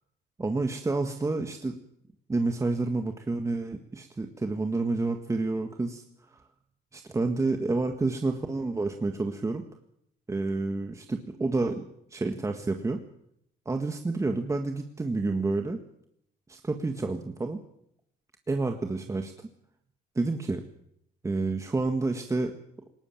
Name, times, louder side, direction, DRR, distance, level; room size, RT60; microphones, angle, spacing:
voice 1, 0.4-1.8 2.3-6.5 6.9-9.6 10.3-13.0 13.6-15.8 16.5-17.6 18.5-19.5 20.1-20.6 21.2-22.6, right 3 dB, 20° right, 5 dB, 1.7 m, -29 dB
19.5 x 18.0 x 9.0 m, 0.73 s
cardioid pair, 110°, 17 cm